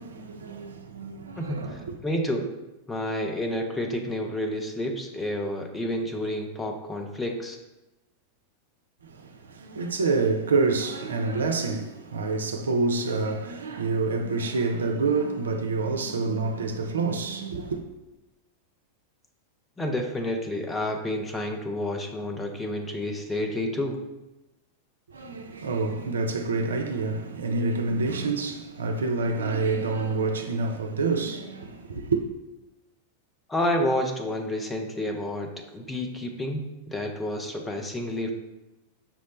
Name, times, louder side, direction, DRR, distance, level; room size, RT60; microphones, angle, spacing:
voice 1, 0.0-2.0 9.0-17.8 25.1-32.3, right 3 dB, 70° right, 0.4 m, -27 dB
voice 2, 1.4-2.4 2.9-7.6 19.8-24.0 33.5-38.3, left 1 dB, 10° left, 0.6 m, -30 dB
5.6 x 2.1 x 4.0 m
figure-of-eight pair, 90°, 0 cm